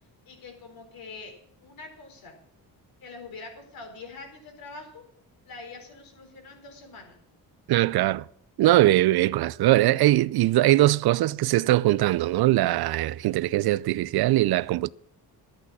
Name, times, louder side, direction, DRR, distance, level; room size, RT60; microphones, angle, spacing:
voice 1, 0.3-1.3 1.6-2.3 3.0-5.0 5.4-7.2, left 3 dB, 60° left, 4.2 m, -44 dB
voice 2, 7.7-8.2 8.6-14.9, right 16 dB, 75° right, 0.5 m, -21 dB
14.0 x 8.6 x 7.2 m
cardioid pair, 150°, 38 cm